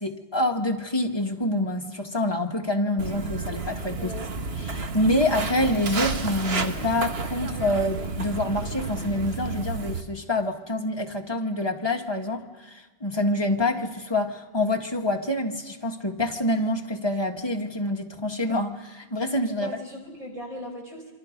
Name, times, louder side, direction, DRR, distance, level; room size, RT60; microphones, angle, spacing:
voice 1, 0.0-4.1 4.7-19.8, left 1 dB, 25° left, 2 dB, 1.8 m, -26 dB
Walk footsteps, 3.0-10.0, right 4 dB, 65° right, 1.6 m, -31 dB
voice 2, 4.0-4.3 19.6-21.1, equal, 30° right, 0 dB, 4.9 m, -38 dB
27.5 x 24.5 x 5.3 m, 1.3 s
omnidirectional pair, 1.1 m